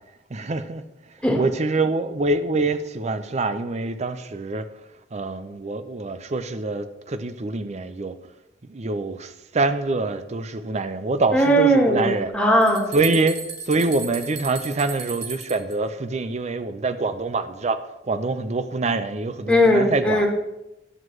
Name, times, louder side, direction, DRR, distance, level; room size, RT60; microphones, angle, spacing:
voice 1, 0.3-0.8 1.4-4.7 5.1-8.2 8.7-12.3 12.9-13.4 13.6-20.3, right 3 dB, 40° right, 11 dB, 0.5 m, -25 dB
voice 2, 11.3-12.9 19.5-20.3, equal, 5° left, -1 dB, 1.4 m, -18 dB
sound 1, 12.2-12.3 12.6-15.8, right 5 dB, 65° right, 1.1 m, -35 dB
11.0 x 7.7 x 3.2 m, 0.93 s
head